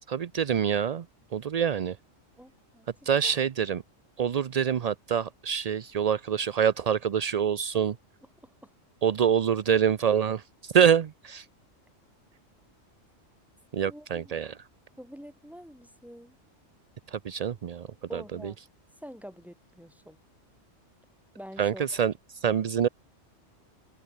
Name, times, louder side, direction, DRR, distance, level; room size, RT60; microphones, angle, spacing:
voice 1, 0.1-1.1 1.3-2.0 3.1-3.8 4.2-7.9 9.0-11.5 13.7-14.6 17.1-18.5 21.6-22.9, right 8 dB, 60° right, 0.4 m, -26 dB
voice 2, 2.4-3.3 7.7-7.8 8.4-8.7 13.9-14.4 15.0-16.4 18.1-18.6 19.0-20.2 21.3-21.8, equal, ahead, 5.2 m, -47 dB
omnidirectional pair, 1.3 m